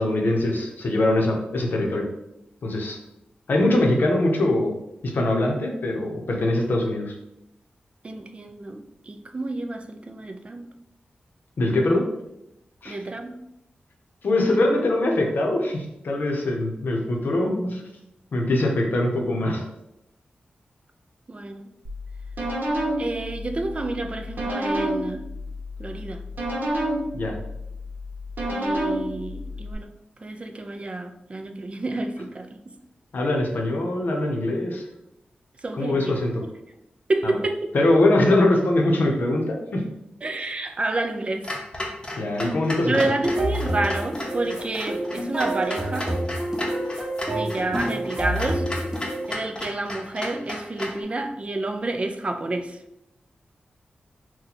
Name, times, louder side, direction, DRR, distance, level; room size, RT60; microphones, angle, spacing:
voice 1, 0.0-2.1 2.6-3.0 3.5-4.7 5.0-7.1 11.6-12.0 12.8-13.0 14.2-17.8 18.3-19.7 27.1-27.4 33.1-34.8 35.7-36.4 37.2-37.4 37.7-39.8 42.2-43.0, left 1 dB, 70° left, 1 dB, 0.7 m, -22 dB
voice 2, 8.0-10.7 12.8-13.3 21.3-21.6 23.0-25.2 25.8-26.2 28.4-29.9 30.2-32.7 35.6-36.1 37.1-37.7 40.2-41.5 42.8-46.1 47.3-48.6 49.3-52.8, right 2 dB, 35° right, 6 dB, 0.3 m, -29 dB
sound 1, 21.8-29.7, equal, 65° right, 1.0 m, -29 dB
Clock, 41.4-51.0, left 1 dB, 25° left, 0.7 m, -34 dB
sound 2, 43.2-49.3, right 1 dB, 15° right, 0.7 m, -28 dB
2.9 x 2.2 x 4.0 m, 0.84 s
wide cardioid pair, 90°, 3 cm